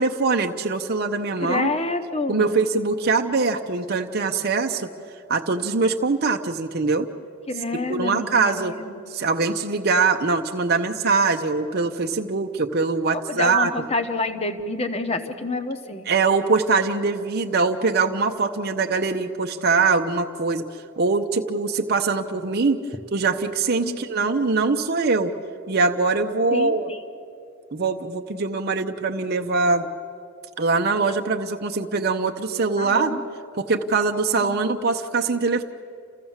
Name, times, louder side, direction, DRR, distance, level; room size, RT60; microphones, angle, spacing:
voice 1, 0.0-1.7 2.3-4.9 5.3-7.1 7.9-8.8 9.1-13.7 16.1-20.6 21.0-22.8 23.1-25.3 25.7-26.9 27.7-29.9 30.6-33.1 33.5-35.6, right 4 dB, 45° right, 4 dB, 0.7 m, -22 dB
voice 2, 1.4-2.6 7.5-8.9 13.1-16.1 23.8-24.3 26.5-27.0 32.8-33.2 34.4-34.5, left 3 dB, 30° left, 7 dB, 1.1 m, -28 dB
28.5 x 15.5 x 7.3 m, 2.5 s
head